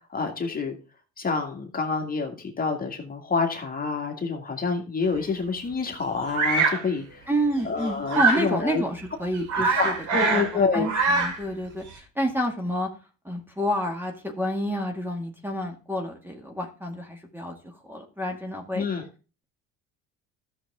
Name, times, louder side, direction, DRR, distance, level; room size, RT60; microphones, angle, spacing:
voice 1, 0.1-0.7 1.2-7.2 7.6-8.8 9.8-10.9 18.7-19.1, left 4 dB, 30° left, 2 dB, 2.2 m, -27 dB
Bird vocalization bird call bird song, 6.3-6.8 8.1-8.5 9.0-9.1 9.3-10.5 10.8-11.4, right 4 dB, 65° right, 3.6 m, -23 dB
voice 2, 7.3-9.9 10.3-12.9 13.2-18.8, equal, 5° right, 3 dB, 2.1 m, -29 dB
13.0 x 6.8 x 3.7 m, 0.35 s
supercardioid pair, 90°, 31 cm